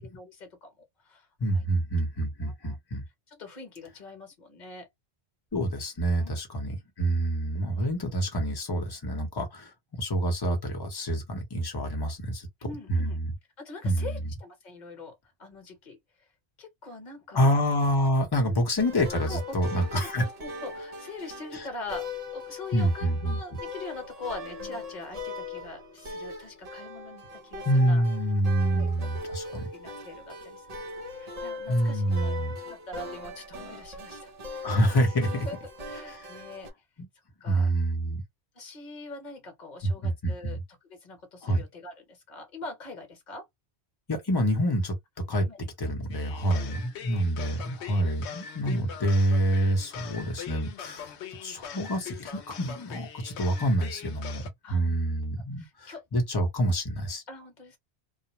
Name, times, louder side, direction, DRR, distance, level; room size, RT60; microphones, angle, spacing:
voice 1, 0.0-1.3 1.5-1.6 2.4-2.8 3.3-4.9 6.2-6.4 12.6-13.2 13.6-16.3 16.6-17.5 18.4-18.5 19.3-19.4 19.8-28.0 28.7-29.1 29.4-30.9 31.1-34.7 35.4-35.6 35.9-36.7 37.4-37.7 38.5-40.6 40.9-43.5 45.4-46.0 46.5-46.8 54.6-55.0 55.6-56.0 57.3-57.8, left 2 dB, 45° left, 1.1 m, -43 dB
voice 2, 1.4-3.0 5.5-12.5 12.9-13.3 13.8-14.2 17.3-20.2 21.5-21.7 22.7-23.4 27.6-29.7 31.7-32.5 34.6-35.5 36.1-36.3 37.0-37.1 37.5-38.2 39.8-40.6 41.4-41.6 44.1-44.9 45.3-45.5 45.8-54.4 54.7-57.2, right 1 dB, 25° left, 0.9 m, -27 dB
sound 1, 18.8-36.7, left 2 dB, 40° right, 0.7 m, -40 dB
sound 2, 46.1-54.5, left 8 dB, 80° left, 0.9 m, -42 dB
2.4 x 2.1 x 3.0 m
omnidirectional pair, 1.1 m